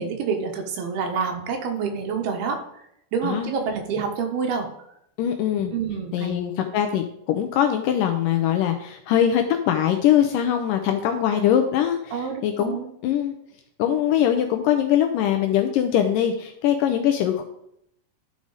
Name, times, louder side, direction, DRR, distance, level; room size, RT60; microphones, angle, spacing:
voice 1, 0.0-2.6 3.1-4.7 5.7-6.3 12.1-12.9, right 5 dB, 85° right, 4 dB, 3.1 m, -27 dB
voice 2, 5.2-5.7 6.1-12.8 13.0-13.4 13.8-17.4, left 10 dB, 80° left, 5 dB, 2.0 m, -22 dB
12.0 x 4.9 x 4.0 m, 0.75 s
omnidirectional pair, 4.3 m